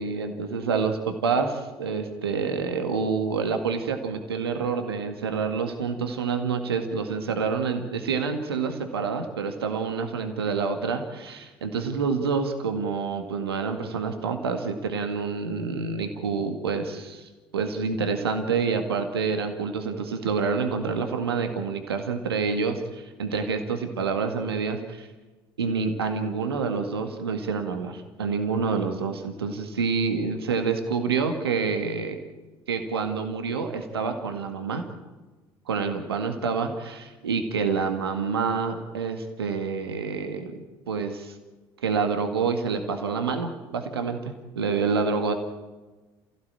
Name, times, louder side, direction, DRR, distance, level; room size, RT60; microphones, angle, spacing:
voice 1, 0.0-25.1 25.6-32.2 32.7-34.8 35.7-40.5 40.9-41.3 41.8-45.3, right 5 dB, 80° right, 6 dB, 2.0 m, -27 dB
29.0 x 16.0 x 8.9 m, 1.2 s
figure-of-eight pair, 60°, 13 cm